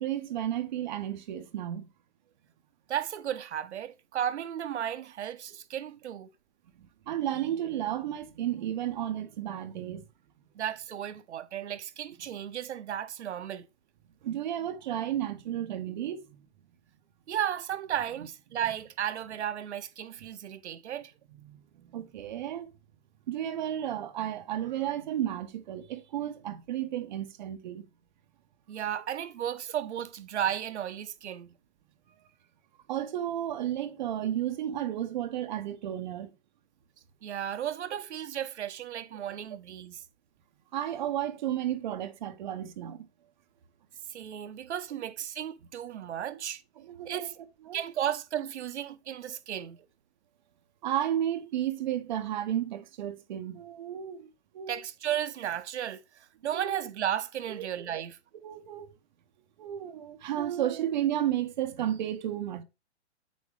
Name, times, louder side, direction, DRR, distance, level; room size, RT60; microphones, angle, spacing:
voice 1, 0.0-1.9 7.1-10.1 14.2-16.4 21.3-22.7 23.3-27.8 32.9-36.3 40.7-43.1 46.3-46.4 46.8-47.3 47.7-47.8 50.8-54.3 54.5-54.8 56.5-56.7 57.5-57.7 57.9-58.0 58.4-58.9 59.6-62.6, right 11 dB, 40° right, 0.9 m, -33 dB
voice 2, 2.9-6.3 10.5-13.7 17.3-21.1 28.7-31.5 37.2-40.0 44.1-46.6 47.0-47.3 47.7-49.8 54.7-58.2, right 10 dB, 70° right, 1.1 m, -34 dB
8.5 x 6.3 x 3.3 m
hypercardioid pair, 160°, 35 cm